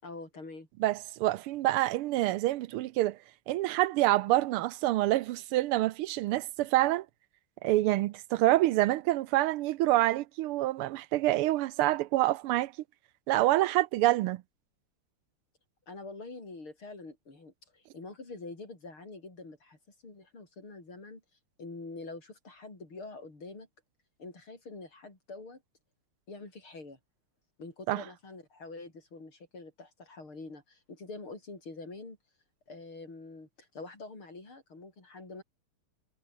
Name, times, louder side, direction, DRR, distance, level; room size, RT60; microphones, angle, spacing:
voice 1, 0.0-0.7 15.9-19.8 20.0-21.2 21.6-23.7 24.2-25.6 26.3-27.0 27.6-32.2 32.7-35.4, left 3 dB, 70° left, 7.1 m, -45 dB
voice 2, 0.8-3.2 3.5-7.1 7.6-12.7 13.3-14.4 27.9-28.0, right 16 dB, 80° right, 1.6 m, -27 dB
omnidirectional pair, 2.4 m